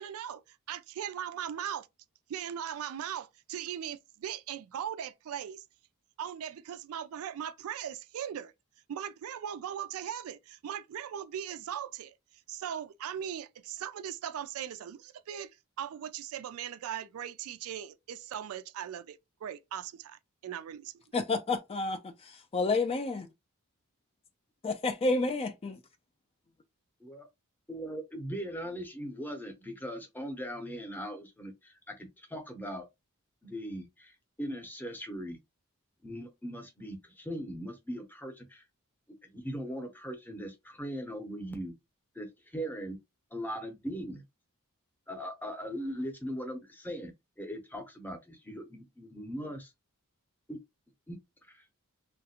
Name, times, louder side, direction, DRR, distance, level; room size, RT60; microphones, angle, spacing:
voice 1, 0.0-1.9 2.3-5.6 6.2-8.5 8.9-12.1 12.5-15.5 15.8-21.0, right 9 dB, 65° right, 0.3 m, -39 dB
voice 2, 21.1-23.3 24.6-25.8, left 3 dB, 25° left, 0.3 m, -30 dB
voice 3, 27.7-32.9 33.4-34.1 34.4-35.4 36.0-38.6 39.2-41.7 42.2-43.0 43.3-44.2 45.1-47.1 47.4-49.7 50.5-50.6 51.1-51.2 51.5-51.6, equal, 10° left, 0.7 m, -39 dB
3.1 x 2.4 x 2.8 m
head